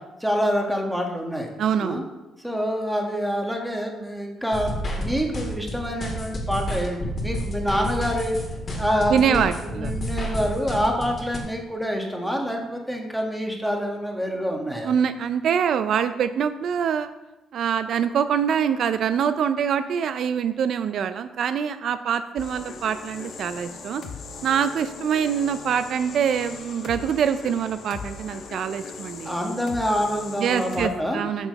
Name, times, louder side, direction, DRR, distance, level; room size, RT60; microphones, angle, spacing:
voice 1, 0.2-1.5 1.8-2.1 2.4-8.4 8.8-14.9 29.2-31.2, equal, ahead, 1 dB, 1.6 m, -26 dB
voice 2, 1.6-2.0 9.1-9.9 14.8-17.1 17.5-24.0 24.4-29.4 30.4-31.5, right 8 dB, 65° right, 11 dB, 0.4 m, -24 dB
sound 1, 4.5-11.4, equal, 40° left, 2.2 m, -30 dB
sound 2, 22.4-30.9, left 5 dB, 65° left, 1.0 m, -39 dB
6.6 x 6.3 x 5.3 m, 1.0 s
cardioid pair, 90°, 0 cm